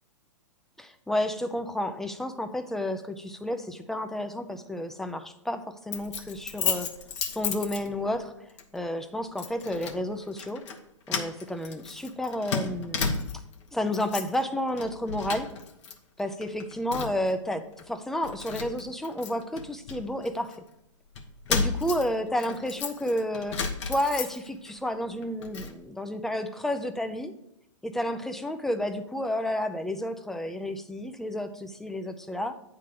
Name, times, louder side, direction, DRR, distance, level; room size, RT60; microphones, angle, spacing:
voice 1, 0.8-6.9 7.3-8.3 8.7-10.6 11.1-13.2 13.7-15.5 16.2-20.5 21.5-27.4 27.8-32.5, left 1 dB, ahead, 8 dB, 0.4 m, -31 dB
Keys jangling, 5.9-8.2 8.6-8.8 9.4-10.0 10.3-10.8 11.1-13.6 13.9-14.4 14.7-15.9 16.2-17.3 17.8-17.9 18.2-20.6 21.2-24.7 25.1-25.7, left 5 dB, 60° left, 1.2 m, -33 dB
9.1 x 3.8 x 6.6 m, 0.80 s
hypercardioid pair, 135°, 17 cm